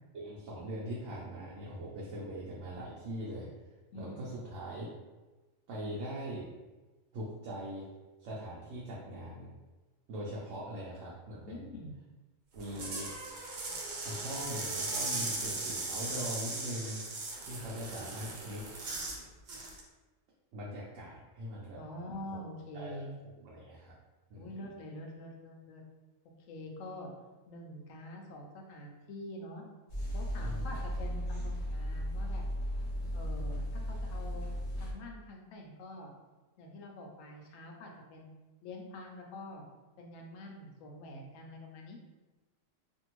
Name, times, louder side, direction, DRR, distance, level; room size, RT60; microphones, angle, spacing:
voice 1, 0.1-3.5 3.9-4.9 5.7-6.5 7.1-7.9 8.2-9.5 10.1-11.8 12.5-13.1 14.0-17.0 17.4-18.8 20.5-21.8 22.3-22.4 22.7-23.0 23.4-23.9 24.3-24.5 30.4-30.7, equal, 75° right, -6 dB, 0.9 m, -41 dB
voice 2, 3.9-4.3 11.5-11.9 21.8-23.1 24.3-25.8 26.5-27.1 27.5-29.7 30.1-32.4 33.1-34.5 34.7-36.1 36.6-38.3 38.6-39.6 40.0-42.0, left 1 dB, 85° left, 1 dB, 1.0 m, -46 dB
sound 1, 12.5-19.2 19.5-19.8, right 3 dB, 60° right, 0.5 m, -38 dB
sound 2, 29.9-34.9, equal, 50° left, 0.8 m, -35 dB
2.6 x 2.6 x 2.9 m, 1.2 s
omnidirectional pair, 1.3 m